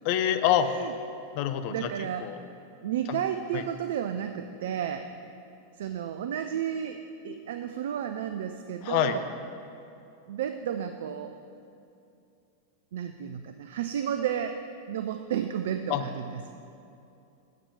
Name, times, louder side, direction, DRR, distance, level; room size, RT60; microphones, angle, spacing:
voice 1, 0.0-0.7 1.3-1.9 2.2-2.4 3.1-3.2 3.5-3.6 8.8-9.2 15.9-16.0, left 10 dB, 45° left, 9 dB, 0.5 m, -26 dB
voice 2, 0.6-0.9 1.7-2.3 2.8-5.1 5.8-9.3 10.3-11.3 12.9-16.5, right 9 dB, 60° right, 8 dB, 0.3 m, -32 dB
7.3 x 6.5 x 6.7 m, 2.6 s
figure-of-eight pair, 90°, 0 cm